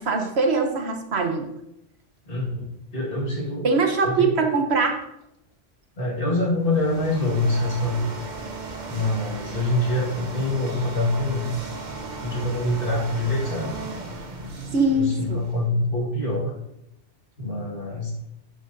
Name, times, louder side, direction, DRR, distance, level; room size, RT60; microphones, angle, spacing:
voice 1, 0.0-1.5 3.6-5.0 14.7-15.4, right 3 dB, 70° right, 4 dB, 1.3 m, -22 dB
voice 2, 2.3-3.7 4.0-4.4 6.0-8.1 8.9-11.5 12.2-13.8 14.9-16.5 17.4-18.1, left 2 dB, 50° left, -3 dB, 2.0 m, -25 dB
sound 1, 6.5-15.7, right 3 dB, 45° right, 1.0 m, -36 dB
11.5 x 6.3 x 2.6 m, 0.83 s
omnidirectional pair, 1.2 m